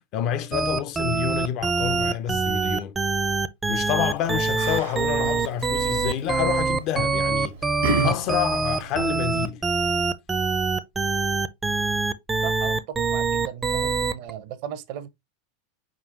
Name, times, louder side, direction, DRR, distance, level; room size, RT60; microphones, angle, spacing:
voice 1, 0.1-3.0 3.7-7.6 8.0-9.7, left 10 dB, 50° left, 0.5 m, -28 dB
sound 1, 0.5-14.3, right 4 dB, 15° right, 0.5 m, -24 dB
Yell, 3.9-9.5, right 3 dB, 85° right, 1.0 m, -33 dB
voice 2, 12.4-15.1, right 10 dB, 60° right, 0.7 m, -36 dB
4.6 x 3.7 x 2.8 m
hypercardioid pair, 100°, 0 cm